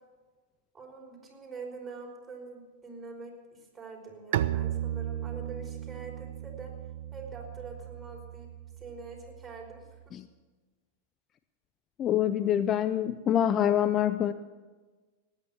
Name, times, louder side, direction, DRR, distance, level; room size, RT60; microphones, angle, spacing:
voice 1, 0.7-6.7 7.1-9.9, right 4 dB, 20° right, 0 dB, 5.0 m, -45 dB
Bowed string instrument, 4.3-9.9, right 12 dB, 65° right, 0.6 m, -35 dB
voice 2, 12.0-14.3, left 10 dB, 35° left, 12 dB, 0.6 m, -25 dB
18.0 x 9.8 x 7.2 m, 1.3 s
hypercardioid pair, 110°, 0 cm